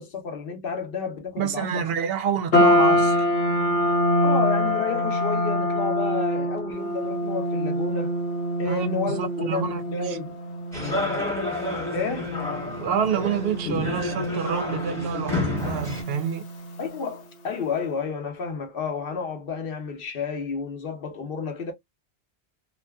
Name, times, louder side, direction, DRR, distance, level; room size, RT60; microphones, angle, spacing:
voice 1, 0.0-1.8 4.2-8.1 8.6-10.4 11.9-12.3 16.8-21.7, left 5 dB, 60° left, 0.9 m, -31 dB
voice 2, 1.4-3.3 8.7-10.2 12.7-16.4, right 7 dB, 65° right, 0.8 m, -28 dB
sound 1, 2.5-16.9, left 1 dB, 85° left, 1.0 m, -25 dB
sound 2, 10.7-16.0, left 3 dB, 5° left, 1.0 m, -30 dB
2.6 x 2.3 x 2.2 m
omnidirectional pair, 1.1 m